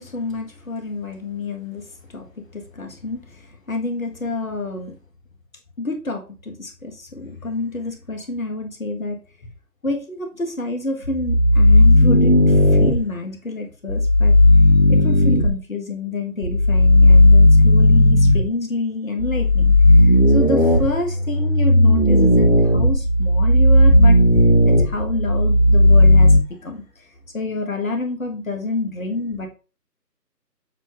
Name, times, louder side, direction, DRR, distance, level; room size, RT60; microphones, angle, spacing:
voice 1, 0.0-1.8 2.1-2.2 2.5-3.2 3.7-4.9 5.8-9.2 9.8-12.4 12.8-14.3 14.9-19.7 20.0-24.2 24.7-26.3 26.6-26.8 27.3-29.5, left 2 dB, 55° left, 3 dB, 1.5 m, -28 dB
sound 1, 11.0-13.0 13.9-15.5 16.4-18.5 19.2-26.4, left 1 dB, 35° left, 0.6 m, -13 dB
7.4 x 2.6 x 5.1 m, 0.34 s
figure-of-eight pair, 155°, 49 cm